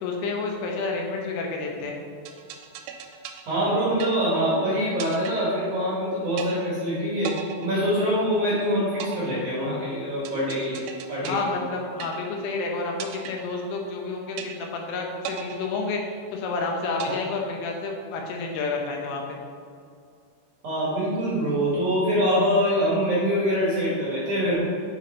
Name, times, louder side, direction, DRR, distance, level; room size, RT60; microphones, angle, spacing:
voice 1, 0.0-2.0 11.2-19.4, left 3 dB, 85° left, 1 dB, 3.4 m, -30 dB
sound 1, 2.3-4.6 5.0-6.0 6.4-6.9 7.2-8.5 9.0-12.6 13.0-14.0 14.4-14.9 15.2-16.5 17.0-18.0, right 8 dB, 85° right, 2.9 m, -38 dB
voice 2, 3.5-7.3 7.6-10.8 11.1-11.5 17.1-17.2 20.6-24.6, equal, 60° right, -9 dB, 2.1 m, -24 dB
7.7 x 5.6 x 3.0 m, 2.3 s
omnidirectional pair, 5.6 m